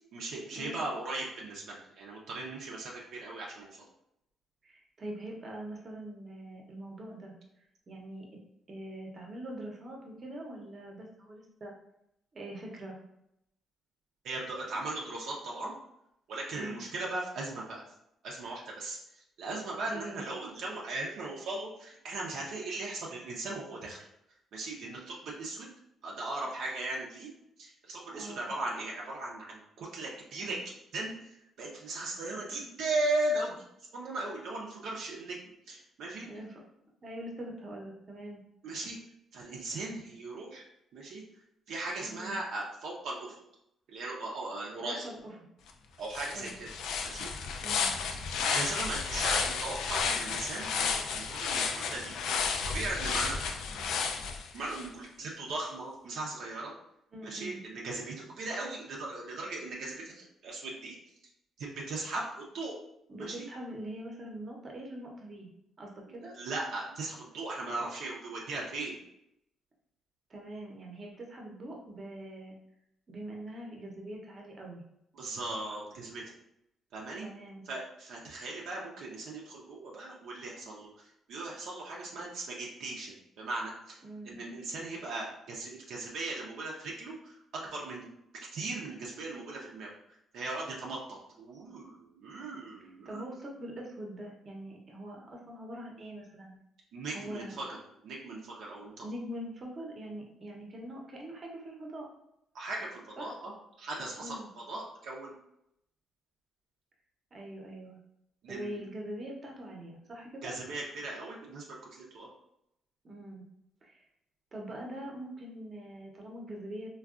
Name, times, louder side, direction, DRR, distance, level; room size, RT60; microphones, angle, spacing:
voice 1, 0.0-3.7 14.2-15.7 16.3-17.8 18.2-24.0 24.5-25.7 26.0-27.3 27.6-30.6 30.9-33.6 33.9-35.4 35.7-36.3 38.6-39.0 39.3-40.7 40.9-41.2 41.7-43.4 43.9-45.1 46.0-46.7 47.0-47.3 48.3-53.4 54.5-56.7 57.2-61.0 61.6-62.8 63.2-63.5 66.2-69.0 75.1-76.2 76.9-77.3 77.7-88.1 88.5-89.9 90.3-93.2 96.9-97.8 98.0-99.0 102.5-103.5 103.8-105.3 108.4-108.8 110.4-112.3, right 2 dB, 75° right, -3 dB, 0.5 m, -38 dB
voice 2, 4.6-7.3 7.9-8.3 8.7-11.7 12.3-13.0 16.5-16.8 19.8-20.3 28.1-28.5 36.2-36.6 37.0-38.4 42.0-42.4 44.8-45.3 46.3-46.5 47.6-48.0 57.1-57.6 63.1-65.5 65.8-66.3 70.3-72.6 73.1-74.8 77.2-77.6 84.0-84.4 92.8-96.5 97.1-97.6 99.0-102.1 103.2-103.3 104.2-104.5 107.3-108.0 108.5-110.5 113.0-113.4 113.8-114.0 114.5-116.9, right 1 dB, 40° right, 0 dB, 0.7 m, -43 dB
sound 1, 45.7-45.8 46.1-54.9, left 5 dB, 85° left, 0.3 m, -32 dB
3.4 x 2.2 x 2.4 m, 0.81 s
cardioid pair, 90°, 0 cm